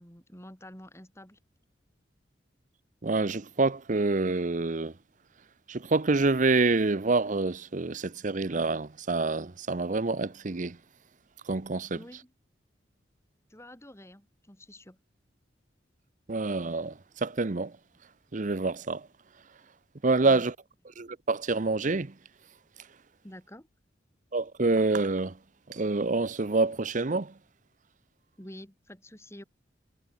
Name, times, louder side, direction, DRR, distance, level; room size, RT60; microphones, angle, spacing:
voice 1, 0.0-1.4 11.9-12.3 13.5-15.0 20.2-20.5 23.2-23.7 28.4-29.4, left 1 dB, 15° left, 7.2 m, -48 dB
voice 2, 3.0-4.9 5.7-10.8 11.5-12.0 16.3-17.7 18.3-19.1 20.0-20.5 21.0-22.1 24.3-25.3 25.7-27.3, right 3 dB, 45° right, 0.8 m, -27 dB
head